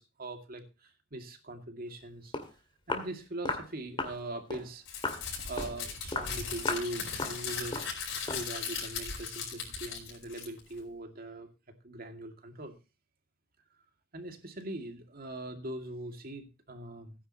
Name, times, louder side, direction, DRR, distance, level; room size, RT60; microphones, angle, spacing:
voice 1, 0.0-2.3 2.9-4.8 5.5-7.9 8.2-11.5 11.8-12.7 14.1-17.1, right 1 dB, 50° right, 6 dB, 2.3 m, -41 dB
Walk footsteps, 2.0-2.1 2.3-2.5 2.9-3.1 3.4-3.7 4.0-4.2 4.5-4.7 5.0-5.2 5.6-5.8 6.1-6.3 6.6-6.9 7.2-7.4 7.7-7.9 8.3-8.5, left 3 dB, 25° left, 2.2 m, -35 dB
Crumpling crinkling, 4.9-10.8, left 6 dB, 70° left, 5.2 m, -38 dB
17.0 x 10.0 x 2.9 m, 0.30 s
head